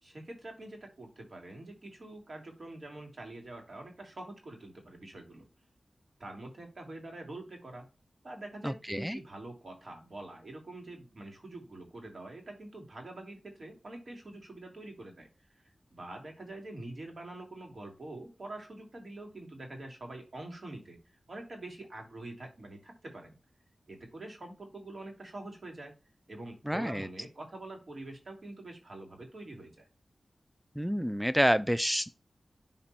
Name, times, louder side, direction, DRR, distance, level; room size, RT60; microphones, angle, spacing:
voice 1, 0.0-5.5 6.2-7.9 8.2-15.3 15.5-21.0 21.3-23.4 23.9-25.9 26.3-29.9, right 2 dB, 55° right, 3.1 m, -45 dB
voice 2, 8.6-9.2 26.7-27.1 30.8-32.1, equal, 5° right, 0.3 m, -28 dB
11.5 x 4.2 x 4.5 m
wide cardioid pair, 75°, 0 cm